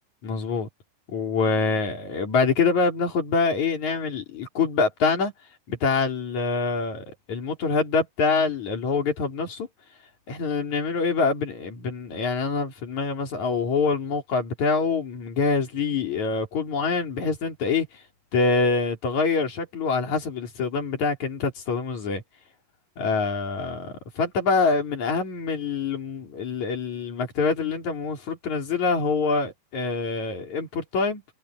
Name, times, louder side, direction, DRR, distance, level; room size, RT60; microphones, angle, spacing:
voice 1, 0.2-0.7 1.1-5.3 5.7-9.7 10.3-17.9 18.3-22.2 23.0-31.2, left 4 dB, 55° left, 5.1 m, -25 dB
omnidirectional pair, 4.1 m